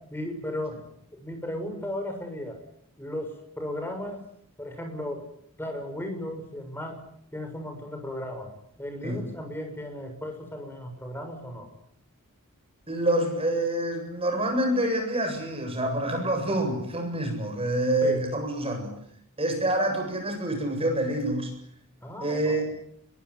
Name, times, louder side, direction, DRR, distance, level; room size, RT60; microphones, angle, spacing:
voice 1, 0.0-2.6 3.0-4.3 4.6-5.3 5.6-7.0 7.3-8.5 8.8-11.7 18.0-18.2 22.0-22.7, left 1 dB, 10° left, 5 dB, 6.6 m, -35 dB
voice 2, 12.9-19.0 19.4-21.5 22.2-22.7, right 1 dB, 25° right, 4 dB, 7.9 m, -27 dB
24.5 x 22.5 x 9.9 m, 0.69 s
head